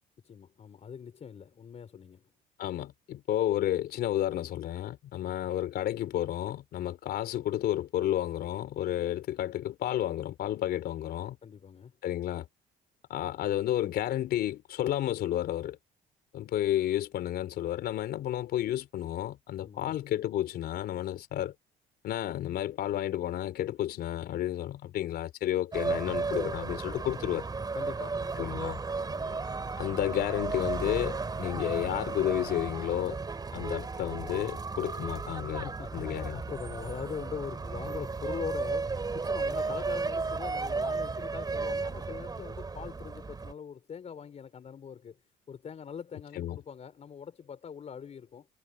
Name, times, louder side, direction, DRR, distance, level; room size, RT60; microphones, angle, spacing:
voice 1, 0.2-2.2 11.4-11.9 19.6-19.9 27.7-28.7 29.0-29.4 35.5-45.2 45.5-48.5, left 7 dB, 40° left, 4.9 m, -42 dB
voice 2, 2.6-11.4 12.0-12.5 13.1-15.8 16.3-21.5 22.0-27.5 28.4-28.8 29.8-33.2 33.5-36.4 46.3-46.6, left 12 dB, 70° left, 4.2 m, -31 dB
sound 1, 25.7-43.5, right 4 dB, 25° right, 3.6 m, -34 dB
cardioid pair, 110°, 17 cm